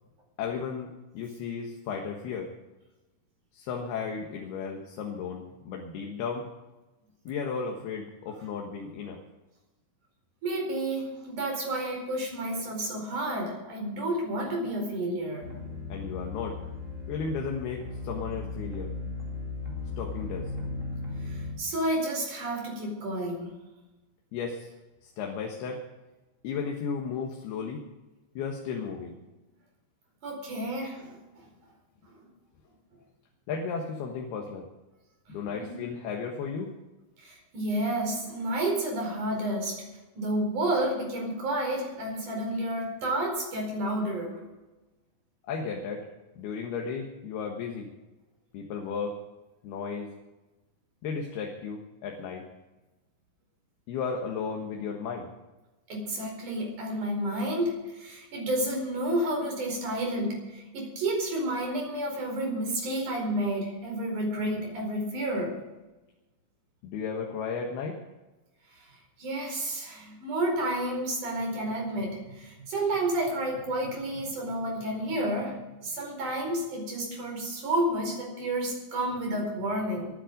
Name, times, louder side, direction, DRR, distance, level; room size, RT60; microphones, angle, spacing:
voice 1, 0.4-2.5 3.5-6.5 7.2-9.2 15.9-16.6 17.1-18.9 20.0-20.5 24.3-24.7 25.0-25.8 26.4-27.8 28.4-29.2 33.5-34.6 35.3-36.7 45.5-46.1 46.4-47.9 48.5-49.2 49.6-50.1 51.0-52.4 53.9-55.3 66.8-68.0, left 5 dB, 80° left, 1 dB, 3.4 m, -34 dB
voice 2, 10.4-15.5 21.2-23.5 30.2-31.2 35.5-35.8 37.2-39.8 40.2-44.4 55.9-65.5 68.7-68.8 69.2-80.1, right 1 dB, 55° right, 0 dB, 6.1 m, -30 dB
sound 1, 15.4-21.6, left 3 dB, 25° right, 2.4 m, -36 dB
21.5 x 10.0 x 5.2 m, 1.1 s
omnidirectional pair, 4.5 m